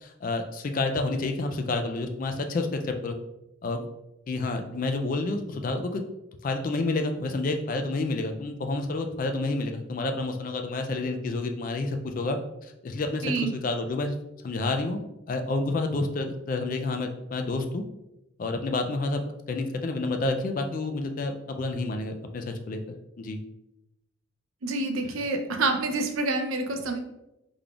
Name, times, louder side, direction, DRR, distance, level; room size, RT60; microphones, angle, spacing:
voice 1, 0.0-3.1 3.6-3.9 4.3-6.0 6.4-14.1 14.4-15.0 15.3-17.8 18.4-19.2 19.5-22.8 23.2-23.4, left 2 dB, 40° left, 5 dB, 0.3 m, -29 dB
voice 2, 24.6-27.0, right 3 dB, 80° right, 4 dB, 0.5 m, -27 dB
3.8 x 3.3 x 2.3 m, 0.90 s
head